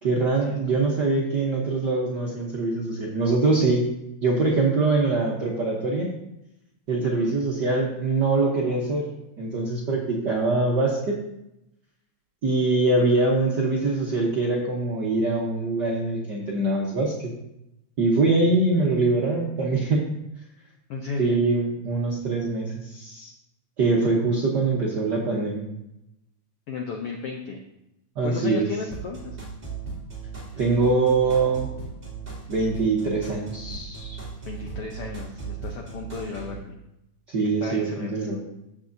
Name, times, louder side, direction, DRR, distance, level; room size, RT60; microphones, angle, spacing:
voice 1, 0.0-6.1 6.9-9.1 9.4-11.2 12.4-17.3 18.0-20.1 21.2-23.3 23.8-25.6 28.2-28.7 30.5-31.7 32.5-34.2 37.3-38.4, right 3 dB, 65° right, -3 dB, 1.1 m, -23 dB
voice 2, 7.0-7.4 13.0-13.1 20.9-21.4 26.7-27.6 28.2-29.4 34.5-36.8 37.4-38.3, left 4 dB, 75° left, 2 dB, 1.3 m, -34 dB
sound 1, 28.9-36.6, right 5 dB, 15° right, 2.3 m, -37 dB
14.5 x 6.2 x 2.7 m, 0.86 s
omnidirectional pair, 3.4 m